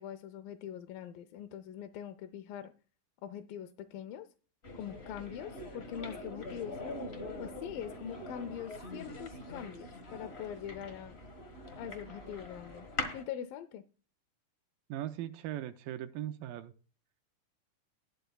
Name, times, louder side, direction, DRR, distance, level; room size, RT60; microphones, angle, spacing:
voice 1, 0.0-2.7 3.2-4.3 4.7-6.8 7.4-11.2 11.8-12.9 13.1-13.8, left 9 dB, 85° left, 7 dB, 2.4 m, -43 dB
sound 1, 4.6-13.2, left 2 dB, 65° left, 0.6 m, -43 dB
voice 2, 14.9-16.7, right 12 dB, 85° right, 8 dB, 2.4 m, -39 dB
19.5 x 6.7 x 2.3 m, 0.38 s
omnidirectional pair, 4.0 m